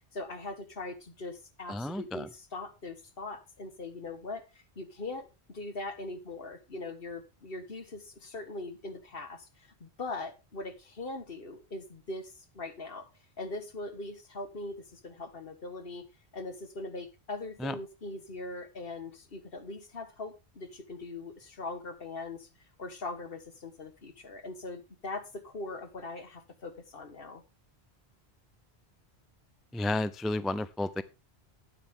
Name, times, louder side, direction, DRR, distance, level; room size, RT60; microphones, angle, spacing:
voice 1, 0.1-13.1 13.4-16.1 16.3-22.5 22.8-27.4, left 2 dB, 60° left, 9 dB, 1.7 m, -41 dB
voice 2, 1.7-2.3 17.6-17.7 29.7-31.0, left 2 dB, ahead, 14 dB, 0.5 m, -32 dB
12.5 x 9.9 x 3.7 m, 0.27 s
omnidirectional pair, 1.1 m